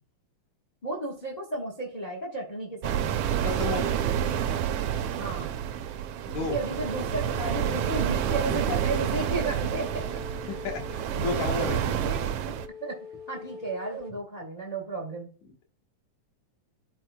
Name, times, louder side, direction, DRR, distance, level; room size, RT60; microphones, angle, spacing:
voice 1, 0.8-3.1 5.1-5.6 6.4-10.2 11.8-12.2 12.8-15.3, right 2 dB, 50° left, 0 dB, 0.4 m, -34 dB
sound 1, 2.8-12.7, right 9 dB, 80° right, 1.4 m, -29 dB
voice 2, 3.4-4.0 6.2-6.6 8.5-8.6 10.5-12.0, left 4 dB, 80° left, 1 dB, 2.7 m, -32 dB
sound 2, 6.5-8.4 9.3-11.4 12.2-14.1, left 2 dB, 60° right, 0.8 m, -44 dB
12.5 x 4.4 x 2.2 m, 0.39 s
omnidirectional pair, 3.3 m